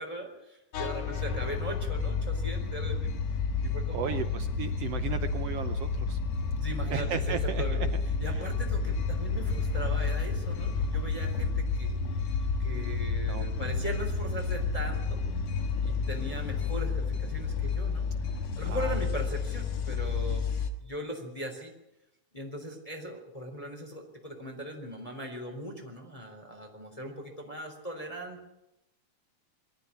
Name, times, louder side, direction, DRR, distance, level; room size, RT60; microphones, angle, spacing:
voice 1, 0.0-3.1 3.6-4.2 6.5-7.8 8.2-15.2 15.8-18.1 18.6-20.4 20.8-21.7 22.3-28.5, right 1 dB, 10° left, 1 dB, 3.5 m, -39 dB
sound 1, 0.7-20.7, left 4 dB, 65° left, 2.6 m, -30 dB
voice 2, 3.9-6.2 6.9-7.6 8.3-8.4 13.3-13.5 18.6-19.0, right 9 dB, 70° right, 9 dB, 1.6 m, -35 dB
22.5 x 14.0 x 9.8 m, 0.89 s
omnidirectional pair, 3.6 m